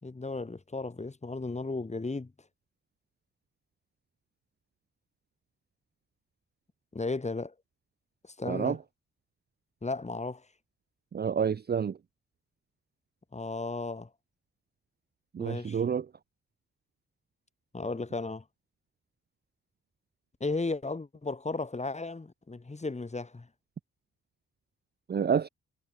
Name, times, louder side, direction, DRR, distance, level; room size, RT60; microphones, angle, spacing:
voice 1, 0.0-2.3 6.9-7.5 8.4-8.8 9.8-10.4 13.3-14.1 15.4-15.8 17.7-18.4 20.4-23.5, left 3 dB, 25° left, 5.0 m, -35 dB
voice 2, 8.5-8.8 11.1-12.0 15.3-16.1 25.1-25.5, right 7 dB, 35° right, 0.6 m, -28 dB
cardioid pair, 110°, 29 cm